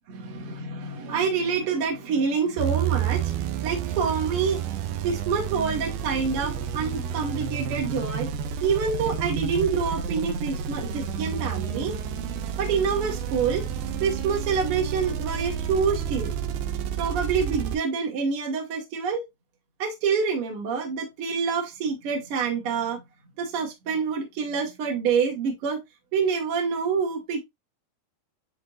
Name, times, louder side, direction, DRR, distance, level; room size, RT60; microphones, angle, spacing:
voice 1, 0.1-4.6 5.0-8.3 8.6-12.0 12.6-13.6 14.0-16.3 17.0-19.2 19.8-23.0 23.4-25.8 26.1-27.4, right 5 dB, 60° right, 1.5 m, -27 dB
sound 1, 2.6-17.8, right 8 dB, 80° right, 2.4 m, -30 dB
10.0 x 3.9 x 2.4 m
omnidirectional pair, 5.2 m